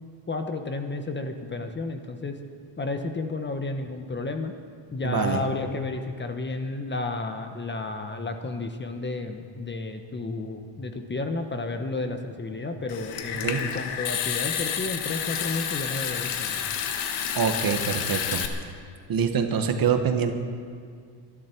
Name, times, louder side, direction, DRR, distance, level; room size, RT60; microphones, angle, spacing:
voice 1, 0.3-2.3 2.8-4.5 4.9-16.6, left 3 dB, 25° left, 6 dB, 1.1 m, -32 dB
voice 2, 5.0-5.4 13.4-13.6 17.3-18.4 19.1-20.3, right 7 dB, 45° right, 6 dB, 1.4 m, -25 dB
Water tap faucet / Sink (filling or washing) / Trickle dribble, 12.9-18.5, left 8 dB, 90° left, 1.4 m, -30 dB
25.0 x 11.5 x 4.6 m, 2.1 s
cardioid pair, 120°, 48 cm